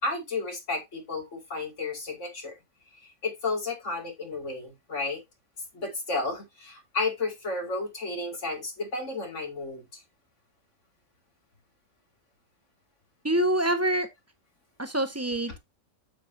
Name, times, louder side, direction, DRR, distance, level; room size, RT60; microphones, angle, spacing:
voice 1, 0.0-2.5 3.2-5.2 5.7-9.9, left 3 dB, 65° left, 2.9 m, -32 dB
voice 2, 13.2-14.1 14.8-15.6, right 1 dB, 10° right, 1.4 m, -25 dB
8.4 x 7.9 x 2.7 m
omnidirectional pair, 1.4 m